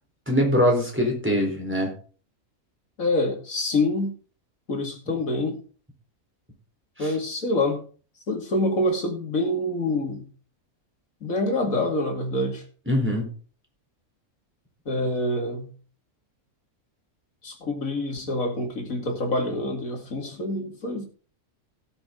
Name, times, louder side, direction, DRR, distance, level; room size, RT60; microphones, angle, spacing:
voice 1, 0.3-1.9 7.0-7.1 12.9-13.3, equal, 10° right, 0 dB, 4.0 m, -22 dB
voice 2, 3.0-4.1 4.7-5.6 7.0-7.8 8.3-10.3 11.2-12.6 14.9-15.7 17.4-21.0, left 1 dB, 70° left, 2 dB, 2.8 m, -26 dB
18.0 x 7.0 x 3.8 m, 0.40 s
omnidirectional pair, 1.5 m